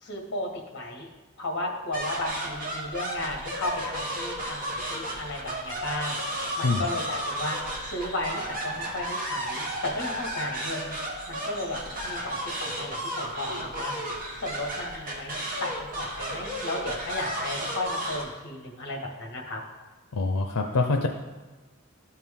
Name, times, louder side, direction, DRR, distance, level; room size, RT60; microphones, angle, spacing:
voice 1, 0.0-1.1 1.4-11.0 11.3-13.9 14.4-19.6, left 2 dB, 50° left, 1 dB, 1.6 m, -34 dB
sound 1, 1.9-18.2, right 1 dB, 40° right, 1.5 m, -33 dB
voice 2, 20.1-21.1, left 3 dB, 90° left, 4 dB, 0.6 m, -25 dB
12.5 x 4.5 x 3.7 m, 1.3 s
head